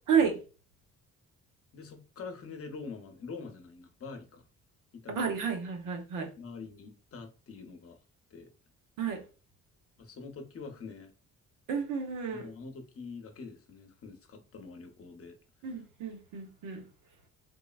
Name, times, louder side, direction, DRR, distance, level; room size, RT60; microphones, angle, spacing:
voice 1, 0.1-0.4 5.1-6.3 9.0-9.2 11.7-12.5 15.6-16.8, right 6 dB, 90° right, 0.7 m, -31 dB
voice 2, 1.7-4.4 4.9-5.4 6.4-8.0 8.3-8.5 10.0-11.1 12.3-15.4, left 4 dB, 50° left, 0.8 m, -45 dB
3.7 x 2.0 x 2.3 m
cardioid pair, 90°, 30 cm